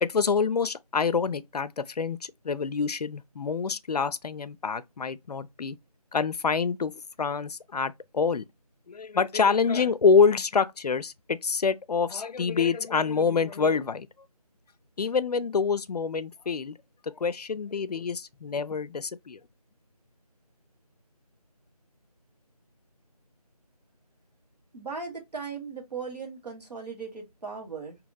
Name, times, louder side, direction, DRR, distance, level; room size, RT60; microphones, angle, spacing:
voice 1, 0.0-5.8 6.1-6.9 7.2-8.4 8.9-14.1 15.0-16.8 17.0-19.4, left 5 dB, 75° left, 0.4 m, -26 dB
voice 2, 24.7-28.0, right 5 dB, 85° right, 1.5 m, -38 dB
2.8 x 2.7 x 2.2 m
figure-of-eight pair, 180°, 20 cm